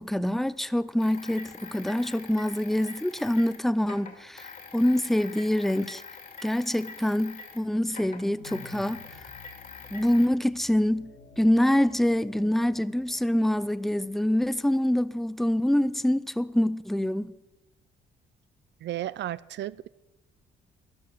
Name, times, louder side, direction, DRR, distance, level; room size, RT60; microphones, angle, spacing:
voice 1, 0.0-6.0 6.4-9.0 9.9-11.1 11.4-17.3, left 1 dB, ahead, 0.5 m, -25 dB
sound 1, 1.0-7.6 7.9-10.3, left 5 dB, 45° left, 2.6 m, -45 dB
sound 2, 7.7-14.0, left 3 dB, 65° left, 3.1 m, -52 dB
voice 2, 18.8-19.9, right 13 dB, 65° right, 0.5 m, -33 dB
12.5 x 11.0 x 6.5 m
cardioid pair, 90°, 20 cm